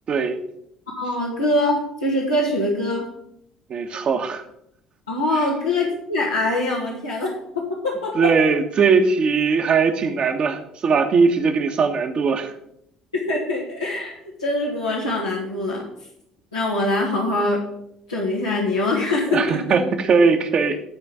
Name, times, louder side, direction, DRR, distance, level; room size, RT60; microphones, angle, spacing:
voice 1, 0.1-0.4 3.7-4.4 8.1-12.5 19.3-20.8, right 5 dB, 45° right, 6 dB, 1.4 m, -19 dB
voice 2, 0.9-3.0 5.1-8.3 13.1-14.1 14.4-15.8 16.5-17.6 18.1-19.6, left 2 dB, 85° left, -7 dB, 1.7 m, -23 dB
11.5 x 4.5 x 6.8 m, 0.75 s
figure-of-eight pair, 55°, 2 cm